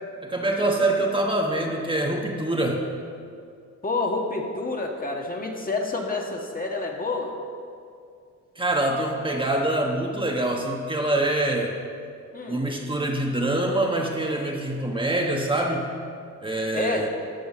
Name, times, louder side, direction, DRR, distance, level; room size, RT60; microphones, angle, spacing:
voice 1, 0.2-2.9 8.6-11.8 12.5-15.9 16.4-17.1, right 1 dB, 15° right, 0 dB, 1.2 m, -25 dB
voice 2, 3.8-7.3 12.3-12.6 16.7-17.1, left 3 dB, 30° left, 1 dB, 1.5 m, -28 dB
12.5 x 6.1 x 6.1 m, 2.3 s
cardioid pair, 90°, 30 cm